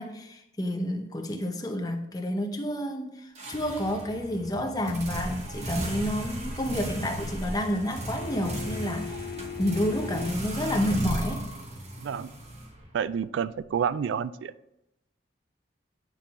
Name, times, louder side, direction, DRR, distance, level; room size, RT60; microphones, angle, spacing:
voice 1, 0.0-9.2 9.6-11.5, equal, 20° left, 4 dB, 0.7 m, -30 dB
sound 1, 3.3-13.1, right 1 dB, 35° right, 1.1 m, -35 dB
sound 2, 8.2-10.6 13.2-13.3, left 7 dB, 60° left, 0.4 m, -39 dB
voice 2, 12.0-12.3 12.9-14.5, right 7 dB, 80° right, 16 dB, 0.3 m, -29 dB
9.0 x 3.8 x 4.1 m, 0.85 s
head